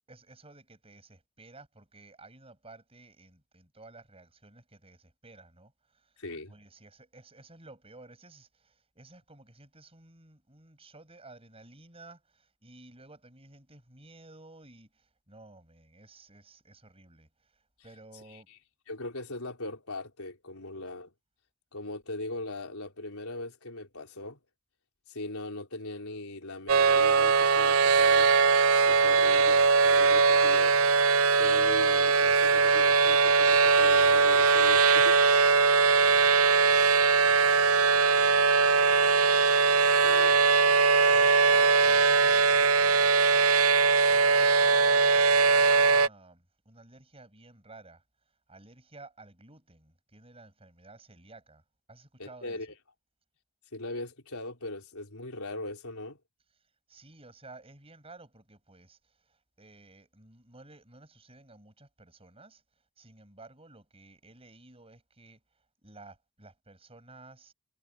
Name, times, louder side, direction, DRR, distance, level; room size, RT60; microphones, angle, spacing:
voice 1, 0.1-6.1 6.5-18.5 35.8-39.3 41.0-43.6 44.1-48.0 48.5-51.6 51.9-52.6 56.9-62.6 63.0-65.4 65.8-67.5, right 2 dB, 25° right, 7.9 m, -54 dB
voice 2, 6.2-6.5 18.3-18.6 18.9-21.1 21.7-24.4 25.1-28.3 28.9-30.8 31.4-35.2 40.0-40.5 52.2-52.7 53.7-56.2, left 2 dB, 75° left, 4.5 m, -39 dB
sound 1, 26.7-46.1, right 4 dB, 70° right, 0.7 m, -21 dB
head